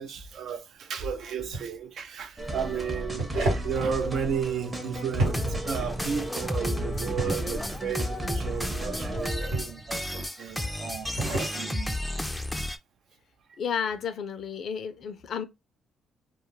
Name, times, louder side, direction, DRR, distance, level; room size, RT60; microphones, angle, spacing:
voice 1, 0.0-12.0, right 7 dB, 65° right, 0.5 m, -33 dB
sound 1, 1.4-1.6 2.9-3.7 5.1-5.7 6.9-7.4 9.2-9.8 10.9-11.5, right 2 dB, 85° right, 1.1 m, -30 dB
sound 2, 2.4-9.3, right 1 dB, 20° right, 0.7 m, -35 dB
sound 3, 5.2-12.8, left 1 dB, 5° left, 0.4 m, -33 dB
voice 2, 13.6-15.5, left 7 dB, 65° left, 0.4 m, -32 dB
2.3 x 2.0 x 3.0 m
cardioid pair, 90°, 0 cm